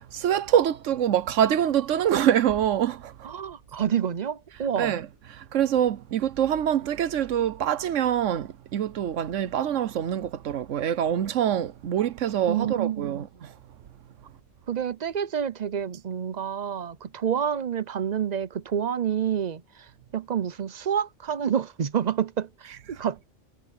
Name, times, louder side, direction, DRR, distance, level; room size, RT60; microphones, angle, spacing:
voice 1, 0.0-3.3 4.5-13.5 22.7-23.3, right 10 dB, 90° right, 1.1 m, -25 dB
voice 2, 3.2-5.0 12.5-13.2 14.7-19.9 20.1-23.3, right 8 dB, 45° right, 0.7 m, -28 dB
omnidirectional pair, 1.2 m